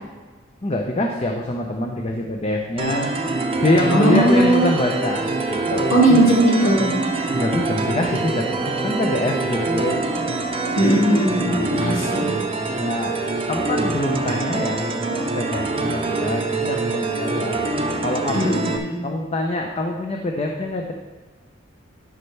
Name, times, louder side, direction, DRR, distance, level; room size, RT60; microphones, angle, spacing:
voice 1, 0.6-3.1 3.6-6.2 7.3-10.0 11.4-12.3 12.8-13.2 13.5-17.6 17.9-18.5 19.0-20.9, left 1 dB, 30° left, 2 dB, 0.6 m, -25 dB
sound 1, 2.8-18.8, right 3 dB, 30° right, 0.6 m, -25 dB
voice 2, 3.9-4.7 5.9-7.0 10.8-12.3 18.3-19.0, right 1 dB, 85° left, -3 dB, 2.5 m, -18 dB
12.0 x 5.3 x 3.3 m, 1.3 s
head